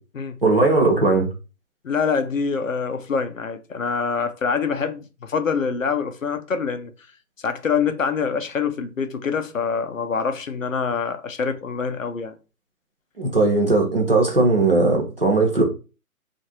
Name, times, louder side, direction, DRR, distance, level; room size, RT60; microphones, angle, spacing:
voice 1, 0.4-1.3 13.2-15.6, right 3 dB, 40° right, 0.8 m, -18 dB
voice 2, 1.8-6.9 7.4-12.3, left 5 dB, 60° left, 0.5 m, -25 dB
2.8 x 2.5 x 2.8 m
figure-of-eight pair, 175°, 44 cm